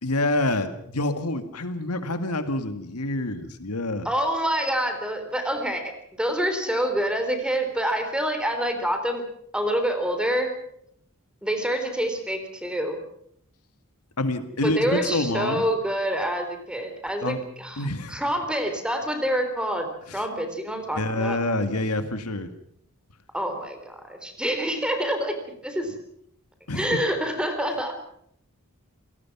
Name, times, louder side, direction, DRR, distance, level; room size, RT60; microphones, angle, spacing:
voice 1, 0.0-4.1 14.2-15.6 17.2-17.4 17.8-18.2 20.1-20.2 20.9-22.5 26.7-27.0, left 2 dB, 85° left, 9 dB, 2.0 m, -27 dB
voice 2, 4.1-9.2 9.5-10.5 11.4-13.0 14.6-19.9 20.1-21.4 23.3-25.9 26.7-28.0, equal, 5° right, 6 dB, 3.7 m, -27 dB
27.5 x 18.5 x 6.1 m, 0.70 s
head